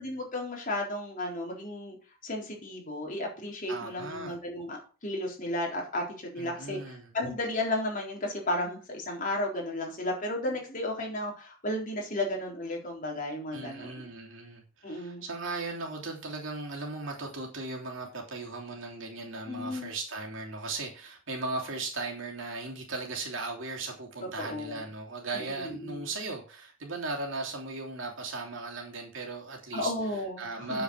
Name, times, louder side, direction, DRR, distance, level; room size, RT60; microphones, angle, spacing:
voice 1, 0.0-2.0 2.2-14.1 14.8-15.2 19.4-19.9 24.4-24.9 25.3-26.1 29.7-30.8, left 1 dB, 45° left, -1 dB, 3.9 m, -34 dB
voice 2, 3.7-4.3 6.4-7.1 13.5-29.9 30.4-30.8, right 3 dB, 70° right, 0 dB, 3.2 m, -37 dB
7.7 x 7.0 x 6.4 m, 0.36 s
head